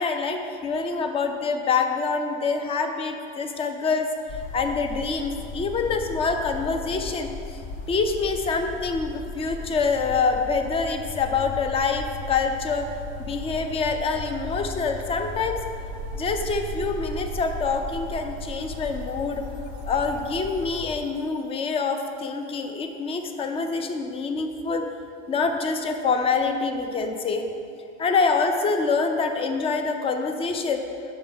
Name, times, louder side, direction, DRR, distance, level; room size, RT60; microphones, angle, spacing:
voice 1, 0.0-4.1 4.5-7.6 7.9-12.9 13.2-15.6 16.1-19.5 19.8-24.8 25.3-27.5 28.0-30.9, left 4 dB, 20° left, 6 dB, 0.4 m, -26 dB
sound 1, 4.3-20.9, left 3 dB, 55° left, 0.9 m, -37 dB
sound 2, 15.5-21.3, right 10 dB, 35° right, 0.4 m, -41 dB
6.0 x 5.1 x 5.2 m, 2.5 s
cardioid pair, 145°, 29 cm